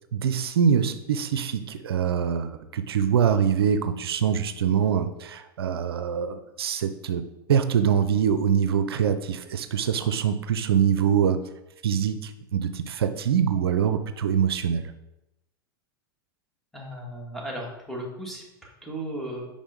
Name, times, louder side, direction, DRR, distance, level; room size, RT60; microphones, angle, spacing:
voice 1, 0.1-11.4 11.8-14.9, right 7 dB, 80° right, 10 dB, 0.5 m, -24 dB
voice 2, 16.7-19.4, right 1 dB, ahead, -3 dB, 2.3 m, -36 dB
5.3 x 5.1 x 5.2 m, 0.94 s
hypercardioid pair, 100°, 13 cm